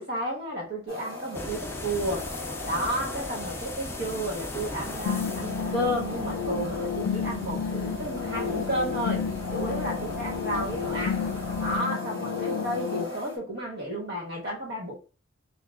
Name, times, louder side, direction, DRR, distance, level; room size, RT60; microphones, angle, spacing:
voice 1, 0.0-2.3 2.6-9.2 9.5-11.2 11.6-14.9, right 1 dB, 55° right, 1.3 m, -32 dB
sound 1, 0.9-13.4, left 2 dB, 25° right, 2.0 m, -38 dB
sound 2, 1.3-11.8, left 2 dB, 10° left, 0.4 m, -39 dB
sound 3, 5.1-13.0, left 7 dB, 85° left, 0.3 m, -31 dB
5.8 x 2.2 x 2.3 m
head